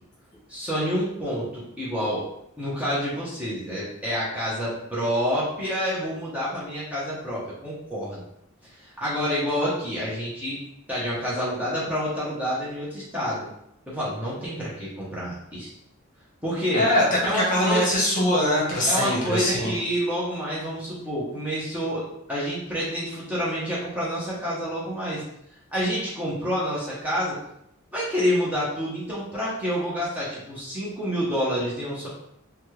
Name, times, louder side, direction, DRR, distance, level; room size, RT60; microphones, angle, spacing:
voice 1, 0.5-2.3 2.6-8.2 8.8-10.6 10.9-13.5 13.9-15.7 16.4-16.8 17.2-17.9 18.9-25.2 25.7-27.4 27.9-32.1, equal, 5° right, -8 dB, 0.7 m, -28 dB
voice 2, 16.7-19.7, left 1 dB, 35° left, -4 dB, 0.9 m, -22 dB
3.2 x 2.3 x 2.9 m, 0.76 s
head